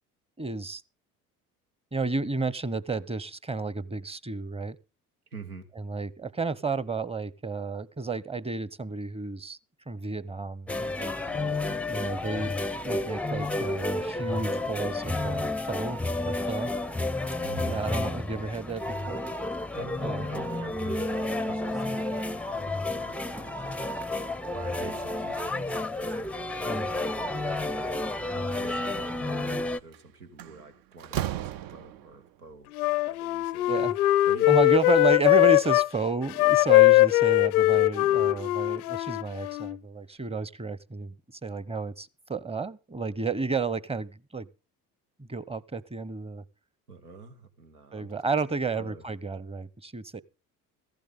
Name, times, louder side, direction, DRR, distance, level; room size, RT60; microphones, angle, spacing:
voice 1, 0.4-0.8 1.9-4.8 5.8-9.6 9.9-11.1 11.9-16.7 17.7-19.2 20.0-20.3 26.6-26.9 33.7-33.9 34.5-41.1 41.4-44.5 45.2-46.4 47.9-50.2, right 4 dB, 15° right, 1.0 m, -32 dB
voice 2, 5.3-5.7 11.2-12.0 17.4-18.5 19.5-24.0 24.5-28.0 28.3-32.7 33.0-33.8 34.3-34.5 38.1-38.4 46.9-48.2 48.8-49.0, right 4 dB, 90° right, 1.6 m, -47 dB
sound 1, 10.7-29.8, left 2 dB, 5° left, 0.6 m, -31 dB
Slam, 29.7-30.0 30.4-32.3, right 12 dB, 50° right, 0.8 m, -34 dB
Wind instrument woodwind instrument, 32.7-35.9 36.3-39.8, left 18 dB, 75° left, 0.6 m, -21 dB
15.5 x 15.0 x 3.7 m
figure-of-eight pair, 60°, 44 cm